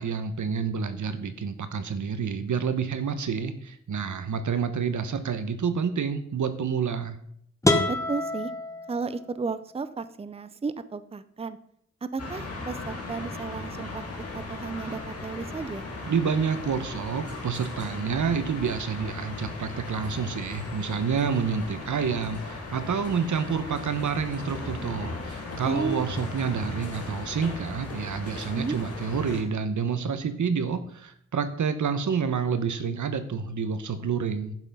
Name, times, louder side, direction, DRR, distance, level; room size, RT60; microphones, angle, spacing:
voice 1, 0.0-7.2 16.1-34.5, right 6 dB, 80° right, 10 dB, 1.0 m, -28 dB
sound 1, 7.6-9.5, left 2 dB, 10° left, 1.1 m, -27 dB
voice 2, 7.9-8.5 8.9-11.6 12.0-14.0 14.3-15.8 25.6-26.0 28.5-28.8, right 4 dB, 20° right, 13 dB, 0.5 m, -33 dB
sound 2, 12.2-29.4, left 3 dB, 55° left, 2.3 m, -37 dB
11.0 x 5.9 x 5.4 m, 0.67 s
wide cardioid pair, 115°, 29 cm